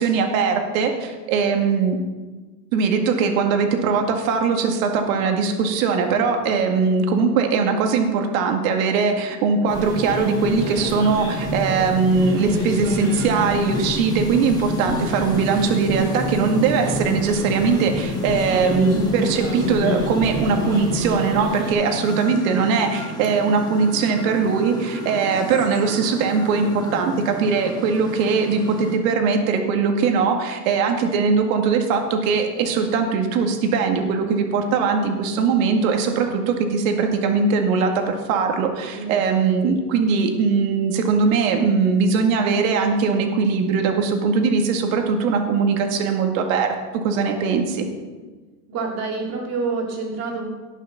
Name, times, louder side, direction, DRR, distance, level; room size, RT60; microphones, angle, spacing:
voice 1, 0.0-2.0 2.7-47.9, right 5 dB, 65° right, 4 dB, 2.1 m, -20 dB
sound 1, 9.7-29.0, equal, 10° left, 1.3 m, -33 dB
sound 2, 9.7-21.7, left 1 dB, 10° right, 3.8 m, -28 dB
voice 2, 38.9-39.6 48.7-50.5, right 4 dB, 35° right, -1 dB, 3.1 m, -28 dB
18.0 x 6.5 x 5.8 m, 1.3 s
supercardioid pair, 170°, 45 cm